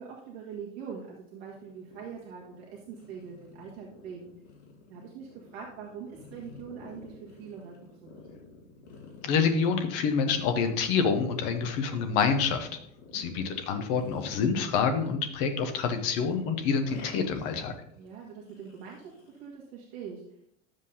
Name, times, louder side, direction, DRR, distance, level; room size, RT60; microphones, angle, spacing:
voice 1, 0.0-4.3 4.9-8.3 13.0-13.2 18.0-20.2, right 6 dB, 50° right, -3 dB, 1.8 m, -43 dB
sound 1, 1.5-15.3 15.5-19.5, left 4 dB, 60° left, 2.3 m, -51 dB
voice 2, 9.2-12.8 13.1-17.7, left 6 dB, 20° left, 7 dB, 0.3 m, -27 dB
11.5 x 7.5 x 2.7 m, 0.71 s
supercardioid pair, 175°, 39 cm